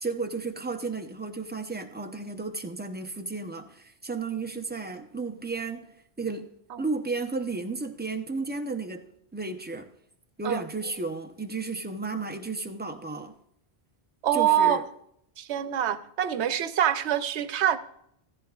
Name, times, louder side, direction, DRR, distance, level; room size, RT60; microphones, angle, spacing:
voice 1, 0.0-5.8 6.2-6.5 6.8-9.1 9.3-9.9 10.4-13.4 14.3-14.8, right 3 dB, 10° right, 0.5 m, -33 dB
voice 2, 14.2-14.8 15.4-17.8, right 10 dB, 80° right, 0.9 m, -25 dB
15.0 x 14.0 x 2.4 m
omnidirectional pair, 1.1 m